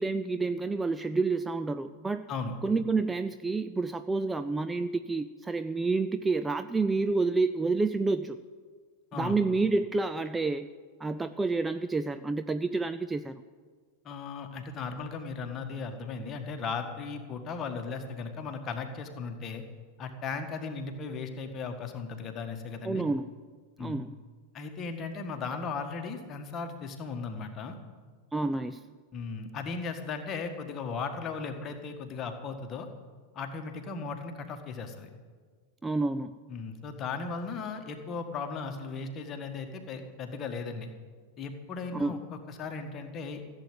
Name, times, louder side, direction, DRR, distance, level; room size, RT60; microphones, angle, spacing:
voice 1, 0.0-2.3 2.6-8.4 9.1-10.7 11.0-13.4 22.8-23.3 23.8-24.2 28.3-28.8 35.8-36.4 41.9-42.2, right 3 dB, 10° right, 10 dB, 0.4 m, -29 dB
voice 2, 14.0-19.6 20.0-23.0 23.8-24.0 24.5-27.8 29.1-32.9 33.3-35.1 36.5-40.9 41.4-43.4, left 4 dB, 30° left, 5 dB, 1.7 m, -37 dB
15.0 x 8.0 x 9.1 m, 1.5 s
figure-of-eight pair, 90°, 0 cm